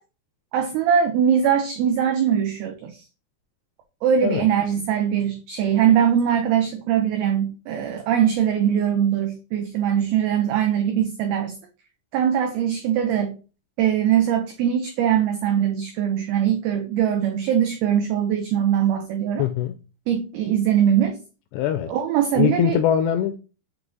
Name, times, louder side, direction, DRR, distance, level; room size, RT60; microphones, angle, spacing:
voice 1, 0.5-3.0 4.0-11.6 12.1-13.4 13.8-19.5 20.1-21.2 21.9-22.8, right 9 dB, 85° right, 2.1 m, -21 dB
voice 2, 19.4-19.8 21.5-21.9 22.4-23.4, left 10 dB, 85° left, 2.4 m, -22 dB
7.5 x 3.2 x 3.8 m
omnidirectional pair, 5.3 m